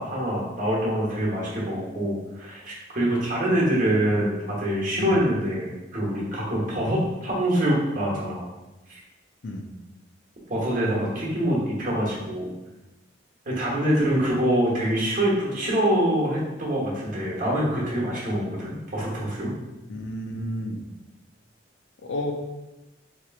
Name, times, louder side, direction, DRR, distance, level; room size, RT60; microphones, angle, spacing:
voice 1, 0.0-8.5 8.9-9.0 10.5-12.5 13.5-19.5, right 1 dB, 45° right, -5 dB, 1.1 m, -25 dB
voice 2, 19.9-20.8 22.0-22.3, left 1 dB, 70° left, 3 dB, 0.5 m, -31 dB
4.2 x 3.0 x 2.4 m, 1.0 s
head